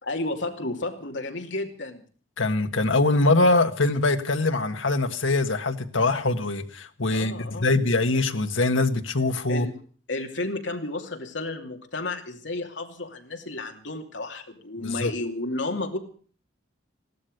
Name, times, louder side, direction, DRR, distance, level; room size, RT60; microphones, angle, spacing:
voice 1, 0.0-2.0 7.1-7.7 9.5-9.7 10.1-16.0, left 2 dB, 70° left, 3 dB, 2.7 m, -32 dB
voice 2, 2.4-9.7 14.8-15.1, left 2 dB, 90° left, 7 dB, 1.5 m, -23 dB
16.5 x 12.5 x 6.6 m, 0.43 s
head